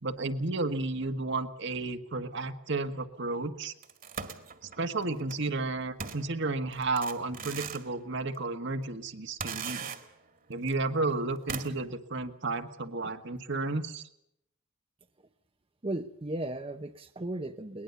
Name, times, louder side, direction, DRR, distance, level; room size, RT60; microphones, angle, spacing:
voice 1, 0.0-3.7 4.8-9.9 10.5-14.0, right 3 dB, 60° right, 7 dB, 1.7 m, -32 dB
sound 1, 3.8-5.4 6.0-7.9 8.3-8.4 9.4-10.3 10.7-10.8 11.5-11.9, right 6 dB, 45° right, 2.1 m, -39 dB
voice 2, 15.8-17.8, right 1 dB, 25° right, 7 dB, 0.8 m, -36 dB
22.0 x 20.0 x 7.0 m, 0.78 s
head